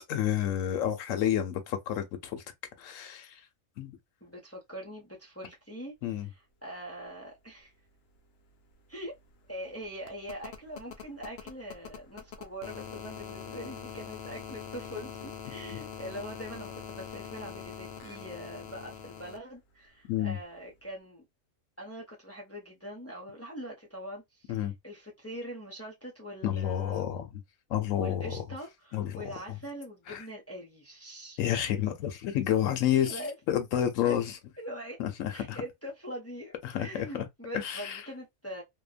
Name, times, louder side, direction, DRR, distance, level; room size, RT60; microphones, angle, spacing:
voice 1, 0.1-2.4 2.8-3.4 3.8-3.9 6.0-6.3 15.7-15.8 20.1-20.4 24.5-24.7 26.4-27.2 27.7-28.4 28.9-29.3 30.1-30.2 31.4-33.2 33.5-34.4 35.0-35.6 36.6-37.3 37.5-38.0, left 10 dB, 80° left, 1.0 m, -30 dB
voice 2, 4.2-7.7 8.9-9.2 9.5-21.2 21.8-27.3 27.9-31.4 33.0-33.3 34.1-34.2 34.6-35.0 35.3-38.6, equal, 20° left, 0.4 m, -43 dB
sound 1, 8.2-8.3 8.5-19.4 20.8-20.9, left 7 dB, 60° left, 0.7 m, -44 dB
2.8 x 2.1 x 2.4 m
omnidirectional pair, 1.4 m